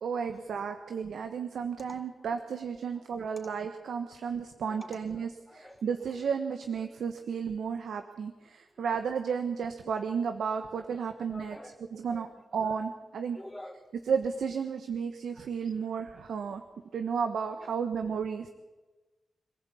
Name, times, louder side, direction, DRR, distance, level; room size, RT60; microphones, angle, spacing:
voice 1, 0.0-11.6 11.9-12.3 12.5-13.4 14.0-16.6 16.9-18.5, right 6 dB, 90° right, 7 dB, 1.3 m, -33 dB
voice 2, 4.7-6.0 11.0-12.3 12.6-12.8 13.4-13.8, left 1 dB, 5° left, 3 dB, 3.8 m, -48 dB
26.5 x 15.5 x 8.6 m, 1.2 s
wide cardioid pair, 95°, 0 cm